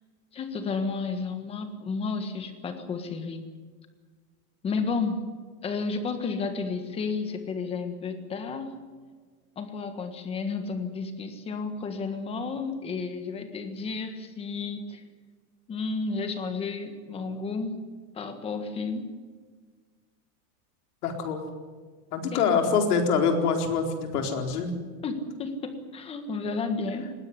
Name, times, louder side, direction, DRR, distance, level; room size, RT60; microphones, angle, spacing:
voice 1, 0.3-3.5 4.6-5.2 5.6-8.7 9.6-15.0 15.7-17.7 18.1-19.1 22.3-22.4 25.0-27.1, left 4 dB, 15° left, 8 dB, 1.5 m, -32 dB
voice 2, 21.0-21.4 22.1-24.7, left 5 dB, 80° left, 4 dB, 4.4 m, -25 dB
20.0 x 16.5 x 9.7 m, 1.5 s
supercardioid pair, 175°, 44 cm